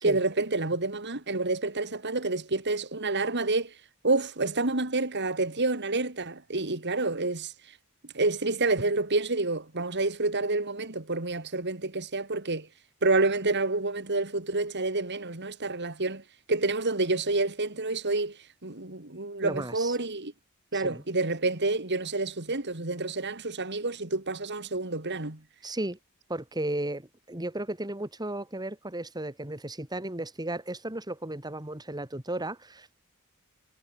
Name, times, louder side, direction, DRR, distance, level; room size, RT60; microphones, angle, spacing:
voice 1, 0.0-3.7 4.0-7.5 8.1-12.7 13.0-16.2 16.5-18.4 18.6-20.3 20.7-25.4, right 3 dB, 55° right, 3.2 m, -28 dB
voice 2, 19.4-20.0 20.7-21.0 25.6-26.0 26.3-33.0, right 1 dB, 20° right, 3.1 m, -34 dB
head